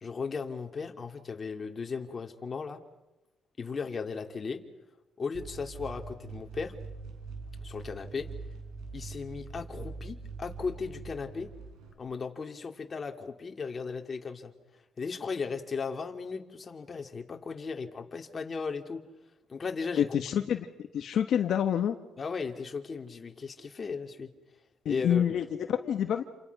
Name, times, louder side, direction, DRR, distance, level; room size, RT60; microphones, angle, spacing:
voice 1, 0.0-2.8 3.6-4.6 5.2-6.7 7.6-8.3 8.9-11.5 12.0-14.5 15.0-19.0 19.5-20.1 22.2-24.3 24.9-25.4, left 5 dB, 40° left, 4 dB, 2.7 m, -36 dB
sound 1, 5.3-11.9, right 4 dB, 85° right, 6.2 m, -43 dB
voice 2, 20.0-20.7 20.9-22.0 24.8-26.2, left 9 dB, 70° left, 6 dB, 1.3 m, -27 dB
28.5 x 28.0 x 6.0 m, 1.0 s
cardioid pair, 90°, 0 cm